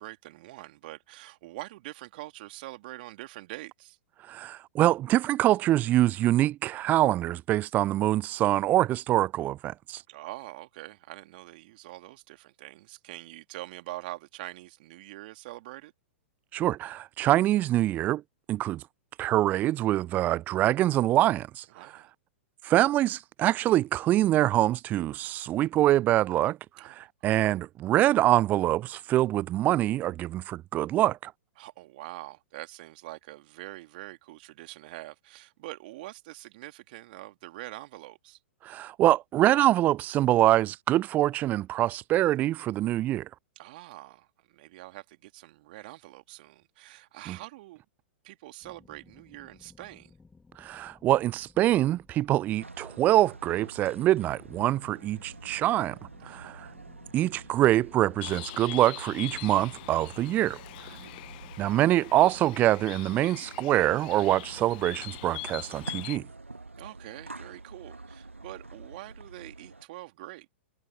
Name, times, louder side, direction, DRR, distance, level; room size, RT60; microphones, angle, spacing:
voice 1, 0.0-4.0 10.1-15.9 21.7-22.1 26.8-27.1 31.6-38.4 43.6-47.8 48.2-50.1 56.2-56.7 60.9-61.2 66.8-70.5, right 19 dB, 50° right, 2.8 m, -44 dB
voice 2, 4.3-10.0 16.5-18.2 18.5-18.8 19.2-21.9 22.6-31.3 38.6-43.3 47.3-47.4 50.6-56.0 56.2-56.7 57.1-60.6 61.6-66.3, right 14 dB, 25° right, 0.3 m, -25 dB
sound 1, 48.6-52.8 53.9-58.5 59.2-63.2 63.8-65.5, left 4 dB, 10° left, 6.0 m, -58 dB
sound 2, 52.6-69.8, right 3 dB, 90° right, 1.4 m, -47 dB
Bird, 58.2-66.2, left 22 dB, 45° left, 0.9 m, -43 dB
figure-of-eight pair, 105°, 7 cm